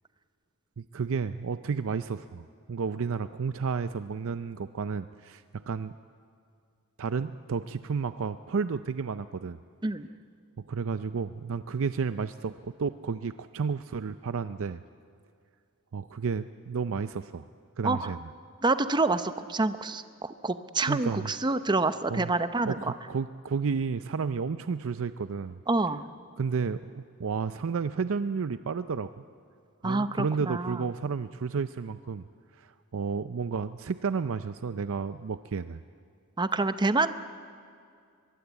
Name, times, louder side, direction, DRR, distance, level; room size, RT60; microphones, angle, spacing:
voice 1, 0.8-5.9 7.0-9.6 10.6-14.8 15.9-17.5 17.8-18.2 20.9-21.3 22.1-22.3 22.7-25.6 26.4-29.2 29.8-32.2 32.5-35.8, right 5 dB, 65° right, 12 dB, 0.5 m, -32 dB
voice 2, 17.8-18.1 18.6-22.9 25.7-26.0 29.8-30.8 36.4-37.1, right 3 dB, 20° right, 11 dB, 0.7 m, -27 dB
23.0 x 22.0 x 8.2 m, 2.3 s
head